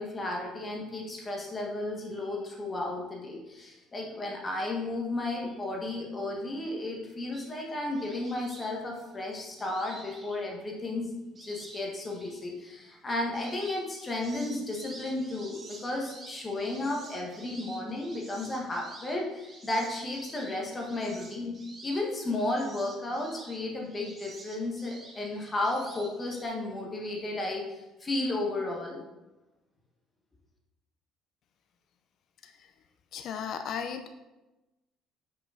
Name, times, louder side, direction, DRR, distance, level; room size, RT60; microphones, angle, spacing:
voice 1, 0.0-11.1 11.4-21.5 21.8-29.0, left 2 dB, 20° left, -1 dB, 1.4 m, -33 dB
sound 1, 7.3-10.8 11.3-12.4 12.9-26.4, right 2 dB, 30° right, 1.2 m, -50 dB
voice 2, 33.1-34.1, left 7 dB, 55° left, 7 dB, 0.6 m, -36 dB
5.7 x 5.4 x 5.0 m, 1.0 s
cardioid pair, 140°, 0 cm